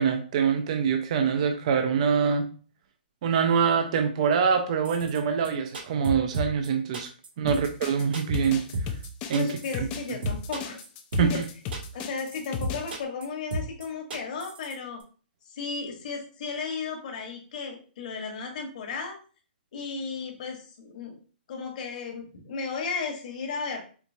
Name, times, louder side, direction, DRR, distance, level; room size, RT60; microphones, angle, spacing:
voice 1, 0.0-2.5 3.2-7.1 7.4-8.6 9.3-9.5 9.8-10.2 11.2-11.4, right 6 dB, 40° right, 6 dB, 0.4 m, -24 dB
sound 1, 4.8-5.2 5.4-5.5 5.7-6.7 6.9-7.3 7.5-7.6 7.8-7.9 8.1-8.5 8.7-9.1 9.3-10.0 10.2-10.9 11.1-11.5 11.7-12.1 12.3-12.4 12.6-13.2 13.5-13.8 14.1-14.7 15.0-15.1, right 2 dB, 70° right, 1.3 m, -32 dB
sound 2, 7.5-12.9, left 5 dB, 20° left, 0.4 m, -35 dB
voice 2, 9.3-10.8 11.2-11.4 11.9-15.0 15.5-19.2 19.7-21.2 21.5-23.8, left 5 dB, 50° left, 2 dB, 1.2 m, -34 dB
4.4 x 2.7 x 2.7 m, 0.39 s
hypercardioid pair, 160°, 5 cm